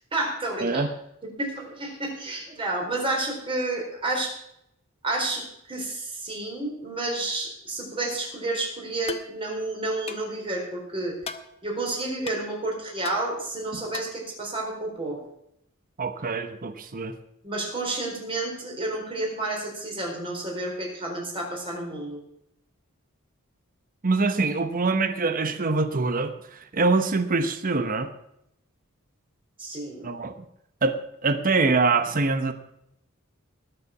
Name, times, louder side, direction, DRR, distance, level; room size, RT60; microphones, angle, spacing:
voice 1, 0.1-0.8 1.4-4.4 5.0-11.2 11.6-15.2 17.4-22.2 29.6-30.1, right 2 dB, 25° right, -1 dB, 4.3 m, -30 dB
sound 1, 9.1-9.3 10.1-10.3 11.2-11.5 12.3-12.4 13.0-13.2 13.9-14.2, left 4 dB, 30° left, 0.9 m, -36 dB
voice 2, 16.0-17.1 24.0-28.1 30.0-30.3 30.8-32.5, right 3 dB, 40° right, 9 dB, 0.9 m, -24 dB
20.0 x 6.8 x 6.0 m, 0.79 s
head